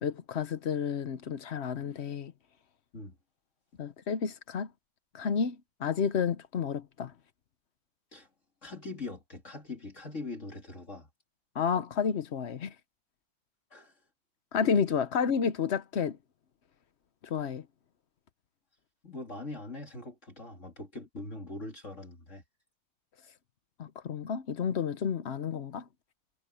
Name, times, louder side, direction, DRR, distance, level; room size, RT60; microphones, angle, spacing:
voice 1, 0.0-2.3 3.8-4.7 5.1-7.1 11.5-12.7 14.5-16.2 17.2-17.7 23.8-25.8, left 6 dB, 60° left, 0.7 m, -31 dB
voice 2, 8.6-11.1 13.7-14.0 19.0-22.4, left 2 dB, 35° left, 2.7 m, -42 dB
omnidirectional pair, 2.2 m